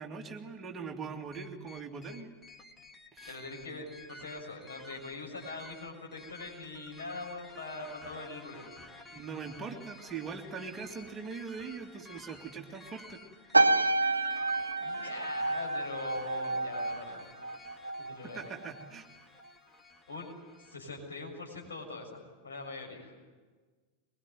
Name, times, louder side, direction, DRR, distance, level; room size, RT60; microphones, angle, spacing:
voice 1, 0.0-2.3 3.1-3.4 9.1-13.2 18.2-19.0, right 5 dB, 20° right, 3 dB, 2.6 m, -41 dB
sound 1, 1.3-20.8, left 2 dB, 10° left, 2.3 m, -52 dB
voice 2, 3.3-8.7 14.8-17.3 18.0-18.5 20.1-20.3 20.6-23.1, left 3 dB, 70° left, 1 dB, 6.8 m, -42 dB
sound 2, 13.5-18.2 18.4-18.8, right 2 dB, 80° right, 0.9 m, -29 dB
23.5 x 22.0 x 9.5 m, 1.4 s
figure-of-eight pair, 90°, 0 cm